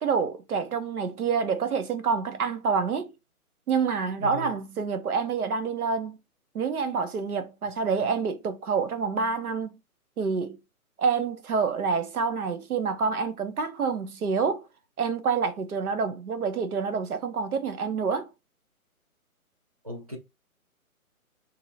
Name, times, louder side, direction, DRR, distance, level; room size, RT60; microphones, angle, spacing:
voice 1, 0.0-3.1 3.7-6.2 6.5-9.8 10.2-10.6 11.0-14.7 15.0-18.3, right 5 dB, 80° right, 1.0 m, -27 dB
voice 2, 4.2-4.5 19.8-20.2, left 1 dB, 25° right, 0.5 m, -36 dB
3.0 x 2.8 x 3.8 m
hypercardioid pair, 170°, 43 cm